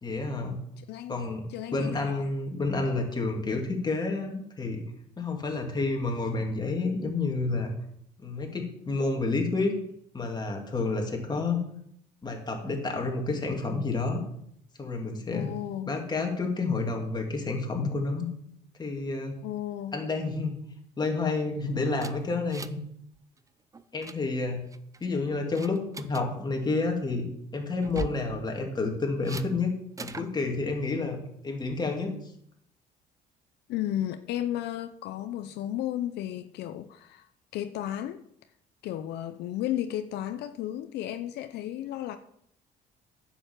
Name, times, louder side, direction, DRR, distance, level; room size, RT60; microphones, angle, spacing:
voice 1, 0.0-0.6 1.1-4.8 5.2-7.7 8.2-9.8 10.1-11.6 12.2-14.2 14.8-15.5 15.9-18.3 18.8-19.4 19.9-20.6 21.0-22.8 23.9-24.7 25.0-31.2 31.4-32.1, left 3 dB, 25° left, 2.8 m, -29 dB
voice 2, 0.8-1.2 1.5-2.3 15.3-16.0 19.4-20.0 33.7-37.3 37.5-38.2 38.8-42.2, left 12 dB, 80° left, 0.7 m, -33 dB
sound 1, 22.0-22.9 23.2-23.4 23.7-24.2 24.7-25.1 25.6-26.2 27.8-28.3 29.2-29.5 30.0-30.3, right 4 dB, 20° right, 0.7 m, -39 dB
10.0 x 6.9 x 7.5 m
cardioid pair, 110°, 17 cm